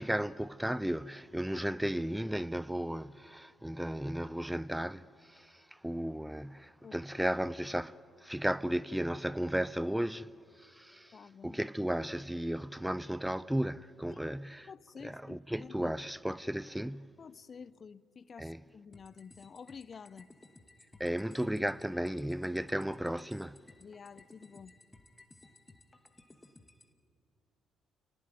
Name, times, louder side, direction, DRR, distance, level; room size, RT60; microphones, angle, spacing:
voice 1, 0.0-10.3 10.6-14.7 15.0-17.1 18.4-18.6 21.0-23.6, right 1 dB, 5° right, 0.6 m, -35 dB
voice 2, 11.1-11.6 14.7-15.9 17.2-20.3 23.8-24.7, left 6 dB, 45° left, 0.6 m, -50 dB
sound 1, 18.9-26.9, left 2 dB, 20° left, 2.1 m, -58 dB
28.5 x 18.0 x 9.2 m
hypercardioid pair, 50°, 0 cm